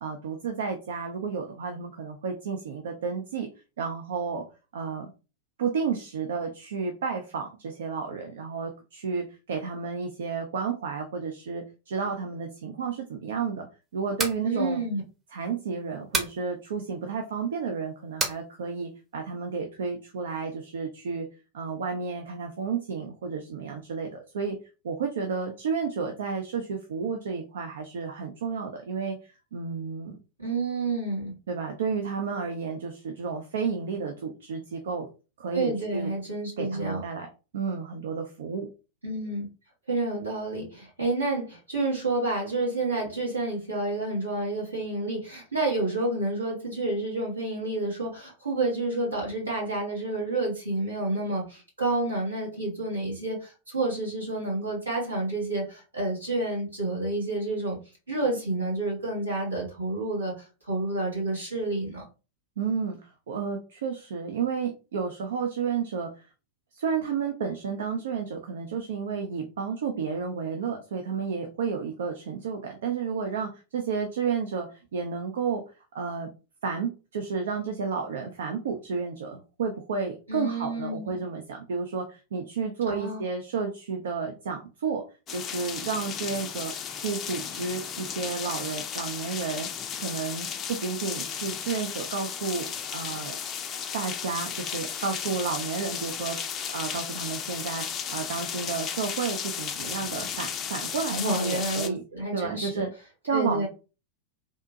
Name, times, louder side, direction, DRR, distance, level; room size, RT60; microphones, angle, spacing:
voice 1, 0.0-3.5 3.8-4.5 4.7-5.1 5.6-13.7 13.9-14.8 15.3-21.3 21.5-24.6 24.8-30.2 31.5-35.1 35.4-36.1 36.6-38.7 62.6-66.3 66.7-75.6 75.9-76.3 76.6-89.7 90.0-93.4 93.9-96.4 96.7-102.0 102.3-102.9 103.3-103.7, right 5 dB, 60° right, 5 dB, 0.5 m, -32 dB
sound 1, 14.0-14.4 16.1-16.4 18.2-18.4, right 3 dB, 20° right, 0.8 m, -28 dB
voice 2, 14.4-15.0 30.4-31.4 35.5-37.0 39.0-39.5 39.9-57.8 58.1-62.0 80.3-81.2 82.9-83.2 101.1-102.7 103.3-103.7, right 2 dB, 80° right, -4 dB, 1.8 m, -29 dB
sound 2, 85.3-101.9, left 8 dB, 30° left, 0.4 m, -34 dB
3.5 x 2.6 x 2.6 m, 0.32 s
figure-of-eight pair, 90°, 0 cm